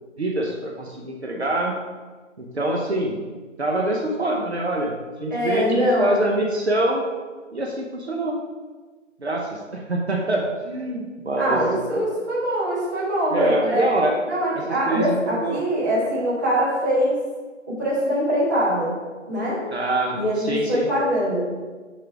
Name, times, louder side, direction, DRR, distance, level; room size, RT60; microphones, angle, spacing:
voice 1, 0.2-1.8 2.4-3.2 3.6-7.0 7.5-8.4 9.2-11.6 13.3-14.1 14.9-15.6 19.7-20.9, right 1 dB, 55° right, 0 dB, 0.9 m, -25 dB
voice 2, 5.3-6.2 11.4-13.9 14.3-17.2 17.7-18.9 19.3-19.6 20.1-21.4, equal, 15° right, -10 dB, 1.3 m, -23 dB
6.3 x 4.3 x 4.6 m, 1.4 s
figure-of-eight pair, 160°, 38 cm